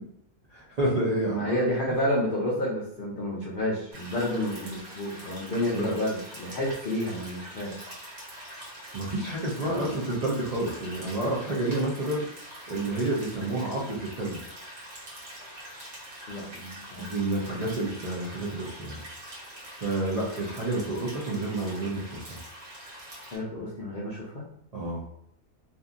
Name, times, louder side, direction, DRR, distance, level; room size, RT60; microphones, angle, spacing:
voice 1, 0.5-1.6 1.9-2.0 5.7-5.9 8.9-12.2 12.7-14.4 17.0-19.0 19.8-22.4 24.7-25.0, right 2 dB, 65° right, -6 dB, 0.4 m, -29 dB
voice 2, 1.3-7.8 9.6-10.0 16.3-17.1 23.3-24.5, left 1 dB, 65° left, -6 dB, 0.5 m, -30 dB
sound 1, 3.9-23.4, equal, 35° right, 0.8 m, -44 dB
2.7 x 2.5 x 2.4 m, 0.69 s
omnidirectional pair, 1.5 m